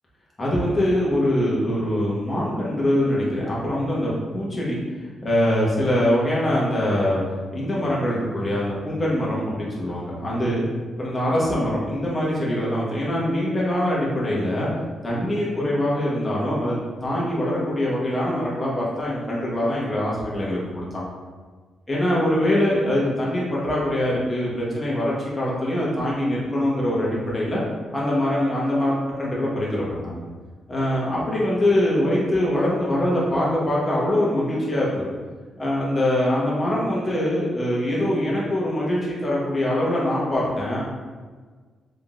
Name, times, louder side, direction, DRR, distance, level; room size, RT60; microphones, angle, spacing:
voice 1, 0.4-4.8 5.2-10.6 11.0-14.7 15.0-16.8 17.0-21.1 21.9-27.6 27.9-30.2 30.7-35.2 35.6-40.8, left 1 dB, 20° left, -6 dB, 1.2 m, -23 dB
3.8 x 3.7 x 2.4 m, 1.5 s
cardioid pair, 115°, 0 cm